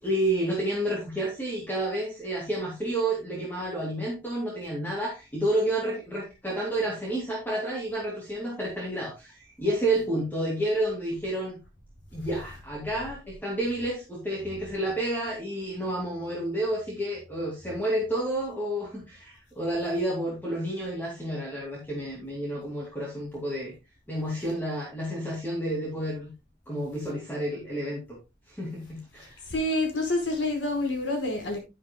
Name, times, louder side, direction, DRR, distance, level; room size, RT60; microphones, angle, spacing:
voice 1, 0.0-11.6 12.1-23.7 24.1-26.3 26.7-28.2 28.5-29.4, right 1 dB, 10° left, 2.4 m, -30 dB
voice 2, 29.4-31.6, left 2 dB, 90° left, 5.1 m, -28 dB
10.5 x 10.0 x 2.3 m
head